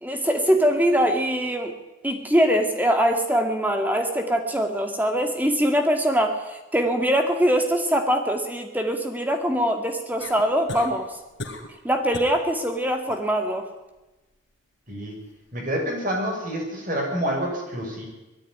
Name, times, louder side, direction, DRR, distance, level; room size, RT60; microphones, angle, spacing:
voice 1, 0.0-1.7 2.0-11.1 11.8-13.7, equal, 10° right, 5 dB, 2.1 m, -22 dB
sound 1, 10.2-10.9 11.4-11.8 12.1-12.4 12.8-13.2 15.1-15.2, left 2 dB, 65° left, 3.0 m, -36 dB
voice 2, 15.5-18.0, equal, 45° right, 0 dB, 6.4 m, -28 dB
19.5 x 13.5 x 9.8 m, 1.1 s
head